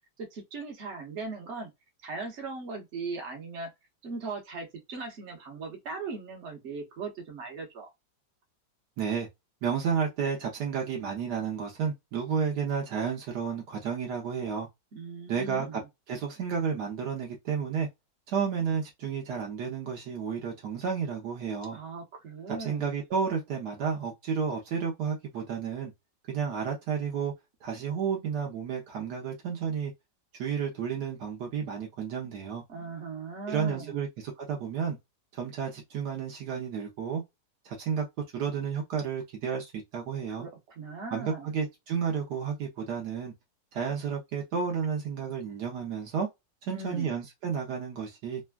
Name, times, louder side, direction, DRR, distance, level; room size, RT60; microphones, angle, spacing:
voice 1, 0.3-1.7 2.0-3.7 4.0-7.9 14.9-15.8 21.7-22.9 32.7-34.0 40.4-40.5 40.8-41.5 46.7-47.1, right 4 dB, 45° right, 1.1 m, -39 dB
voice 2, 9.0-9.3 9.6-14.7 15.3-15.8 16.1-17.9 18.3-21.8 22.5-25.9 26.3-27.3 27.6-29.9 30.4-32.6 33.5-35.0 35.3-37.2 37.6-38.1 38.3-40.5 41.1-43.3 43.7-46.3 46.7-48.4, right 6 dB, 70° right, 1.3 m, -31 dB
3.3 x 2.2 x 2.2 m
omnidirectional pair, 1.9 m